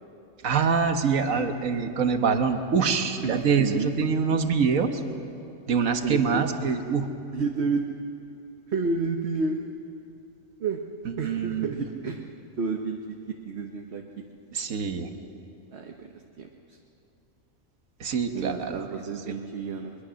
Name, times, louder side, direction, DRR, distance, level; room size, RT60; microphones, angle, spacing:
voice 1, 0.4-5.0 5.7-7.1 11.0-11.7 14.5-15.1 18.0-18.8 19.3-19.4, right 5 dB, 70° right, 7 dB, 1.6 m, -25 dB
voice 2, 3.2-3.9 5.9-6.4 7.3-7.8 8.7-9.6 10.6-10.8 11.2-12.3 12.6-14.2 15.7-16.8 18.3-19.9, right 4 dB, 50° right, 3 dB, 1.3 m, -30 dB
22.5 x 22.0 x 6.3 m, 2.7 s
omnidirectional pair, 1.4 m